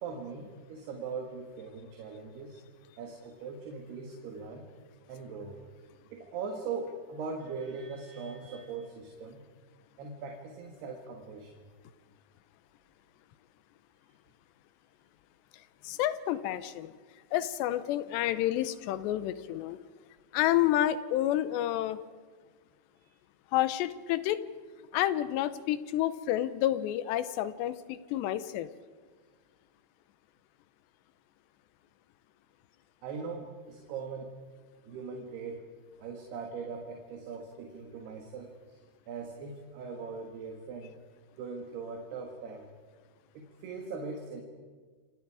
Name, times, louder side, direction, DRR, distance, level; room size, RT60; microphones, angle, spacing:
voice 1, 0.0-2.6 3.0-4.7 5.1-5.7 6.1-9.4 10.0-11.7 23.0-23.1 33.0-34.3 34.9-35.7 36.0-38.6 39.1-41.0 41.4-42.7 43.3-44.4, right 5 dB, 70° right, 3 dB, 3.7 m, -40 dB
voice 2, 15.8-16.9 17.3-19.8 20.3-22.0 23.5-24.4 24.9-28.7, left 13 dB, 85° left, 14 dB, 3.0 m, -29 dB
27.5 x 27.5 x 4.9 m, 1.5 s
omnidirectional pair, 4.9 m